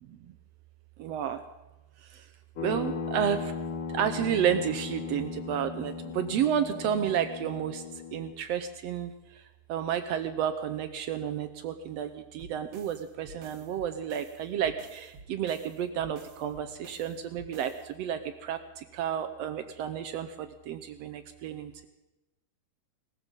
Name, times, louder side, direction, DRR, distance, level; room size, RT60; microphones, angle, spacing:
voice 1, 1.0-1.4 2.0-2.3 2.6-3.5 3.9-9.4 9.7-21.9, right 9 dB, 75° right, 10 dB, 1.6 m, -31 dB
sound 1, 2.6-8.3, left 5 dB, 55° left, 1.5 m, -37 dB
sound 2, 12.4-17.9, right 4 dB, 55° right, 1.8 m, -51 dB
18.5 x 14.5 x 5.3 m, 1.0 s
omnidirectional pair, 3.6 m